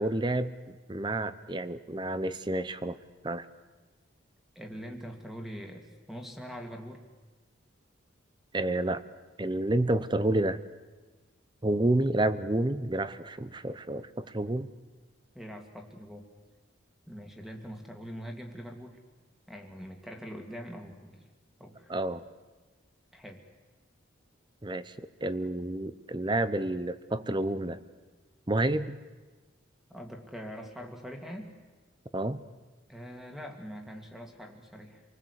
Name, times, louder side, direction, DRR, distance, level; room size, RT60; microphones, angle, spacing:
voice 1, 0.0-3.0 3.2-3.5 8.5-9.0 9.4-10.6 11.6-14.7 21.9-22.2 24.6-27.8 28.5-29.0 32.1-32.4, right 1 dB, 20° right, 14 dB, 0.8 m, -29 dB
voice 2, 4.6-7.0 15.3-16.2 17.1-19.0 19.5-21.3 21.6-21.9 23.1-23.4 29.9-31.5 32.9-35.0, equal, ahead, 3 dB, 2.2 m, -43 dB
27.5 x 20.0 x 8.3 m, 1.3 s
head